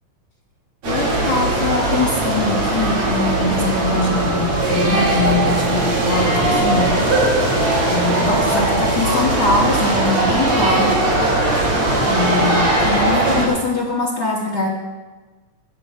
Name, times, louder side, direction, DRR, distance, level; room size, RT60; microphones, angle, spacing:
voice 1, 0.8-6.9 7.9-11.0 12.0-14.7, left 3 dB, 75° left, -3 dB, 0.9 m, -22 dB
sound 1, 0.8-13.5, right 2 dB, 50° right, 3.4 m, -19 dB
sound 2, 4.5-11.3, right 3 dB, 70° right, 3.7 m, -29 dB
17.5 x 6.6 x 4.5 m, 1.3 s
omnidirectional pair, 3.9 m